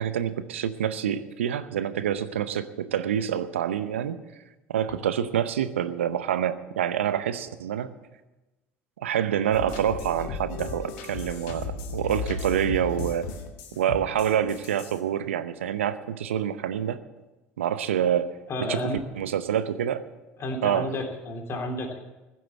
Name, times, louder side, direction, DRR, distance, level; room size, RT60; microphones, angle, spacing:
voice 1, 0.0-4.2 4.7-7.9 9.0-13.3 13.8-17.0 17.6-18.3 18.6-18.8 19.2-20.1 20.6-20.9, right 9 dB, 80° right, 13 dB, 0.7 m, -27 dB
sound 1, 9.5-15.0, left 4 dB, 65° left, 1.7 m, -35 dB
voice 2, 18.5-19.0 20.4-22.0, left 1 dB, 40° left, 2 dB, 3.1 m, -31 dB
15.0 x 7.7 x 8.3 m, 1.1 s
figure-of-eight pair, 65°, 7 cm